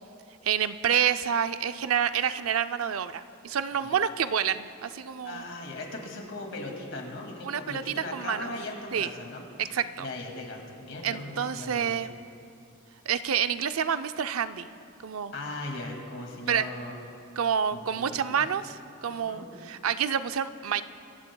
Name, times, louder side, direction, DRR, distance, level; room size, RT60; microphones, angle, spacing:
voice 1, 0.4-5.5 7.4-7.8 8.1-8.5 8.9-9.1 9.6-10.1 11.0-12.1 13.1-14.7 15.0-15.3 16.5-16.7 17.4-20.8, right 8 dB, 85° right, 11 dB, 0.5 m, -28 dB
voice 2, 5.2-9.5 10.0-12.0 15.3-16.9 17.7-18.5 19.1-19.5, left 2 dB, 65° left, 1 dB, 2.2 m, -38 dB
25.0 x 15.0 x 2.3 m, 2.5 s
head